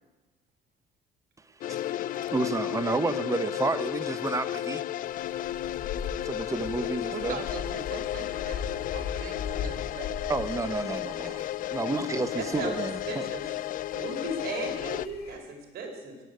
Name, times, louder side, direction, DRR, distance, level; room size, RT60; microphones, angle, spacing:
sound 1, 1.6-15.1, left 13 dB, 55° left, 0.4 m, -33 dB
voice 1, 1.7-2.0 2.3-4.8 6.1-7.4 10.3-11.5 11.7-13.3, right 3 dB, 20° right, 12 dB, 0.9 m, -30 dB
sound 2, 5.0-15.4, left 6 dB, 75° left, 6.3 m, -41 dB
voice 2, 7.1-10.2 11.0-11.4, right 7 dB, 55° right, 6 dB, 2.1 m, -42 dB
voice 3, 12.3-13.6 13.9-16.2, right 2 dB, 70° right, 2 dB, 4.2 m, -36 dB
17.5 x 8.2 x 9.4 m, 1.2 s
cardioid pair, 110°, 17 cm